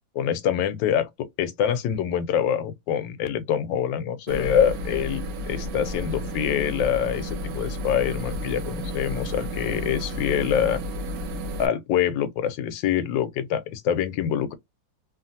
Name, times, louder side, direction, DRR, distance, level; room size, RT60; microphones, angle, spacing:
voice 1, 0.1-10.8 11.6-14.5, left 9 dB, 80° left, 1.3 m, -25 dB
sound 1, 4.3-11.7, equal, 65° right, 0.9 m, -32 dB
3.0 x 2.4 x 2.6 m
omnidirectional pair, 2.0 m